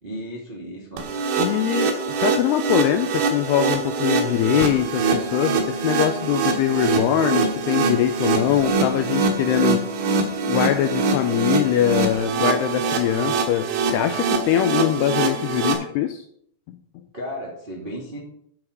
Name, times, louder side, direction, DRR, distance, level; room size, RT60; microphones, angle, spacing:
voice 1, 0.0-1.1 17.1-18.2, equal, 20° right, -3 dB, 1.6 m, -34 dB
sound 1, 1.0-15.7, right 4 dB, 85° right, 4.1 m, -24 dB
voice 2, 1.4-9.9 10.4-16.2, left 11 dB, 80° left, 7 dB, 2.4 m, -22 dB
13.0 x 7.3 x 5.2 m, 0.66 s
omnidirectional pair, 5.4 m